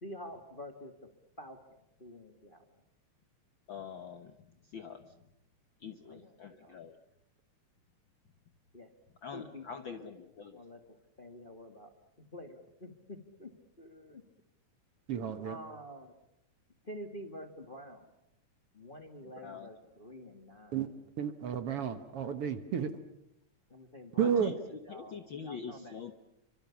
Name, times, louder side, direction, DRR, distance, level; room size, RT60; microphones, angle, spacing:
voice 1, 0.0-0.9 1.4-1.6 2.0-2.6 6.1-6.8 8.7-8.9 9.3-10.8 11.2-14.2 15.4-16.1 16.8-18.1 18.7-20.8 23.7-24.5 24.9-26.0, equal, 20° left, 5 dB, 1.5 m, -48 dB
voice 2, 3.7-4.3 4.7-5.0 5.8-6.9 9.2-10.6 19.4-19.7 24.2-24.6 24.9-26.1, left 6 dB, 60° left, 8 dB, 1.3 m, -44 dB
voice 3, 15.1-15.6 20.7-20.9 21.2-22.9 24.2-24.5, right 8 dB, 55° right, 10 dB, 1.9 m, -31 dB
28.5 x 25.0 x 7.1 m, 0.81 s
omnidirectional pair, 3.5 m